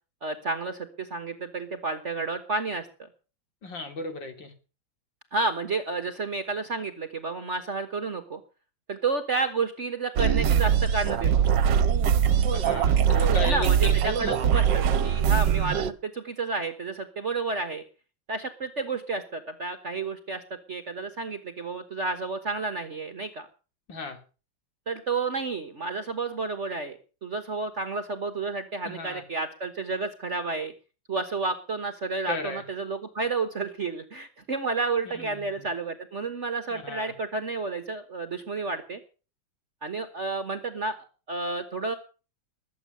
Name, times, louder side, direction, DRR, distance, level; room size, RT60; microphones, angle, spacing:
voice 1, 0.2-3.1 5.3-8.4 8.9-11.4 13.4-17.8 18.3-20.4 20.7-23.5 24.9-30.7 31.1-39.0 39.8-42.0, right 3 dB, 40° right, 9 dB, 1.4 m, -31 dB
voice 2, 3.6-4.5 12.5-14.4 23.9-24.2 28.8-29.2 32.3-32.6 35.0-35.7 36.7-37.1, left 2 dB, 65° left, 7 dB, 3.5 m, -35 dB
sound 1, 10.2-15.9, right 8 dB, 70° right, 1.5 m, -22 dB
21.0 x 8.4 x 6.8 m, 0.36 s
omnidirectional pair, 2.1 m